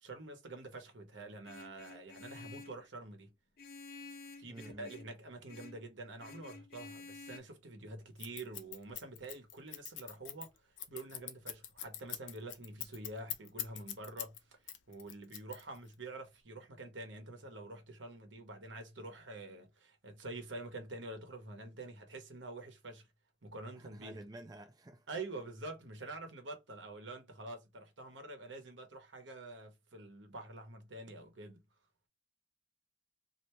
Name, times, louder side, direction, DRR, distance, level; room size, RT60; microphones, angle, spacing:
voice 1, 0.0-3.3 4.4-23.1 23.4-24.2 25.1-31.6, right 2 dB, 80° right, 1.1 m, -47 dB
Vehicle horn car horn honking, 1.4-2.8 3.6-5.1 5.5-5.8 6.2-7.4, left 4 dB, 50° left, 0.5 m, -51 dB
voice 2, 4.5-4.9 23.8-25.1, right 1 dB, 20° right, 0.4 m, -50 dB
Scissors, 8.2-14.4 14.7-15.9, left 11 dB, 85° left, 0.7 m, -42 dB
3.2 x 2.7 x 2.9 m
head